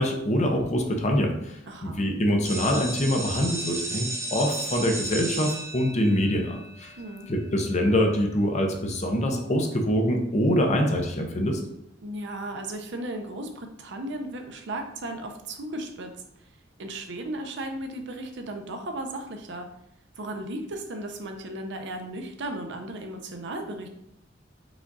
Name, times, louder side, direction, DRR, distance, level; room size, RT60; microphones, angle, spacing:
voice 1, 0.0-6.9 7.3-11.6, equal, 35° left, 3 dB, 0.7 m, -25 dB
voice 2, 1.7-2.0 7.0-7.3 12.0-16.1 16.8-19.7 20.2-23.9, right 1 dB, 65° right, 4 dB, 0.6 m, -35 dB
sound 1, 2.4-8.1, right 2 dB, 15° right, 0.5 m, -35 dB
4.9 x 2.4 x 3.9 m, 0.77 s
head